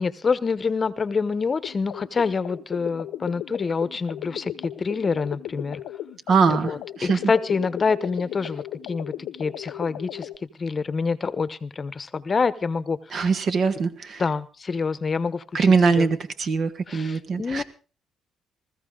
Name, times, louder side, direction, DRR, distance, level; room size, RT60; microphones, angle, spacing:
voice 1, 0.0-5.8 6.5-10.3 10.6-13.3 14.2-16.1 16.9-17.6, left 5 dB, 35° left, 16 dB, 0.9 m, -26 dB
sound 1, 1.6-10.4, left 12 dB, 90° left, 0.8 m, -36 dB
voice 2, 6.3-7.2 13.1-14.2 15.5-17.6, right 5 dB, 55° right, 10 dB, 1.6 m, -22 dB
20.0 x 14.5 x 3.8 m, 0.35 s
cardioid pair, 90°, 0 cm